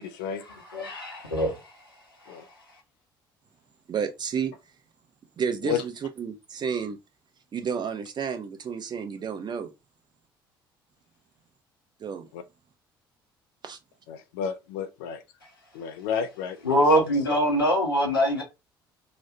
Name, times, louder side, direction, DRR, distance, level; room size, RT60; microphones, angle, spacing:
voice 1, 0.7-1.7 2.3-2.4 16.6-18.4, equal, 90° left, 0.9 m, -23 dB
voice 2, 3.9-4.5 5.4-7.0 7.5-9.7 12.0-12.3 13.6-13.8, right 6 dB, 40° right, 0.7 m, -31 dB
voice 3, 14.1-15.2 15.7-16.8, left 8 dB, 70° left, 0.4 m, -31 dB
3.0 x 2.0 x 2.7 m
figure-of-eight pair, 55°, 12 cm